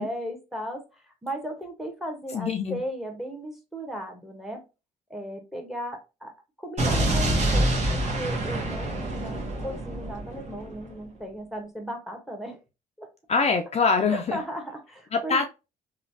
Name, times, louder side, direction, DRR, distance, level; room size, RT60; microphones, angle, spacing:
voice 1, 0.0-4.6 5.1-6.3 6.6-12.6 13.0-13.1 14.1-15.4, right 1 dB, ahead, 1.1 m, -36 dB
voice 2, 2.3-2.8 13.3-14.4 15.1-15.5, left 5 dB, 35° left, 0.4 m, -24 dB
Explosion, 6.8-10.8, right 1 dB, 40° right, 1.2 m, -26 dB
3.0 x 2.3 x 2.7 m
supercardioid pair, 65°, 18 cm